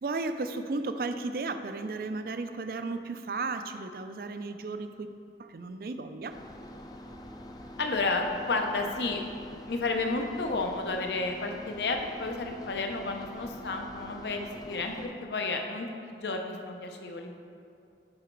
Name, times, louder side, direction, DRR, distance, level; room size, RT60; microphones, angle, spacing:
voice 1, 0.0-5.1 5.4-6.4, right 3 dB, 55° right, 9 dB, 0.4 m, -34 dB
sound 1, 6.3-15.1, equal, 20° left, 0.4 m, -45 dB
voice 2, 7.8-9.2 9.7-17.3, left 3 dB, 75° left, 3 dB, 0.7 m, -31 dB
9.7 x 4.0 x 4.5 m, 2.5 s
head